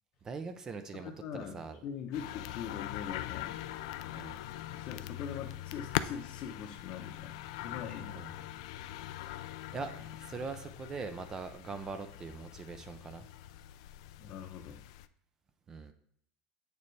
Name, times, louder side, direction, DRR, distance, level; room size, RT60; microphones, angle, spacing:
voice 1, 0.2-1.1 1.5-1.8 4.1-4.4 8.1-8.3 9.0-9.4 9.7-13.3 15.7-15.9, right 4 dB, 20° right, 9 dB, 0.4 m, -42 dB
voice 2, 0.9-3.6 4.7-8.2 14.2-14.8, left 7 dB, 40° left, 1 dB, 0.7 m, -42 dB
sound 1, 2.1-15.1, left 14 dB, 75° left, 0.4 m, -42 dB
8.4 x 6.8 x 3.2 m, 0.70 s
cardioid pair, 170°, 3 cm